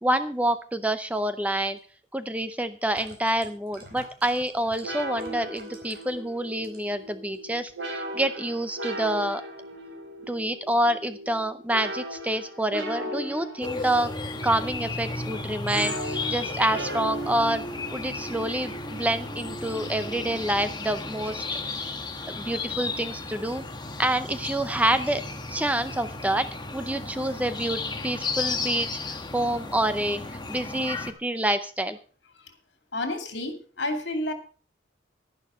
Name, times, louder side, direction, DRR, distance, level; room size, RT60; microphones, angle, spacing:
voice 1, 0.0-1.8 2.1-9.4 10.3-14.1 14.4-17.6 17.9-21.4 22.4-23.6 24.0-25.2 25.5-30.2 30.5-32.0, right 1 dB, 10° right, 11 dB, 0.6 m, -27 dB
sound 1, 1.8-1.9 2.7-6.2 6.5-7.0 7.3-7.4, right 2 dB, 50° right, 4.4 m, -48 dB
sound 2, 4.8-21.0, right 1 dB, 70° right, 3.2 m, -37 dB
sound 3, 13.6-31.1, left 3 dB, 25° left, 1.3 m, -34 dB
voice 2, 32.9-34.3, left 1 dB, 65° left, 6 dB, 2.7 m, -30 dB
11.5 x 11.0 x 5.1 m, 0.38 s
head